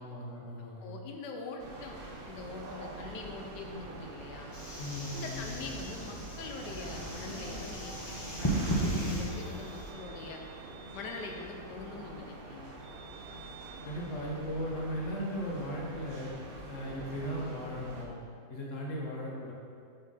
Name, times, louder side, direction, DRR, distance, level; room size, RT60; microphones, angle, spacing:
voice 1, 0.0-1.0 4.8-5.5 13.8-16.3 16.7-18.2 18.5-19.5, equal, 50° left, -3 dB, 1.4 m, -37 dB
voice 2, 0.8-2.0 2.3-4.5 5.1-7.9 8.2-10.4 10.9-12.8, left 4 dB, 85° left, 3 dB, 1.3 m, -43 dB
sound 1, 1.6-18.0, right 2 dB, 50° right, 0.7 m, -45 dB
sound 2, 4.5-9.9, right 1 dB, 25° left, 0.6 m, -36 dB
sound 3, 4.9-10.1, right 1 dB, 75° right, 1.7 m, -51 dB
6.3 x 5.3 x 4.1 m, 2.3 s
omnidirectional pair, 1.8 m